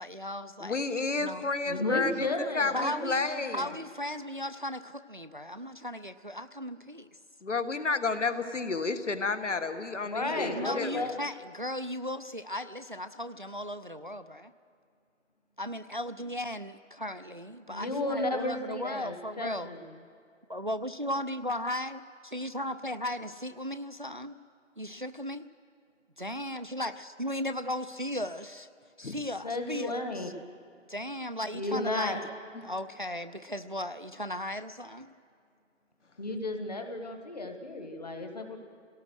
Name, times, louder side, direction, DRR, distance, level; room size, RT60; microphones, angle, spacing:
voice 1, 0.0-0.9 1.2-1.4 2.1-2.3 2.7-7.1 10.2-14.5 15.6-19.7 20.5-24.4 24.8-25.5 26.2-28.7 29.0-30.3 30.9-32.2 32.6-35.1, left 1 dB, 40° right, 11 dB, 0.4 m, -36 dB
voice 2, 0.6-3.6 7.4-11.1 29.0-29.1, left 4 dB, 70° left, 9 dB, 1.5 m, -31 dB
voice 3, 1.7-3.7 10.0-11.1 17.7-19.9 29.4-30.3 31.5-32.2 36.2-38.6, left 2 dB, 35° left, 5 dB, 1.5 m, -33 dB
26.5 x 17.5 x 6.3 m, 2.3 s
figure-of-eight pair, 175°, 37 cm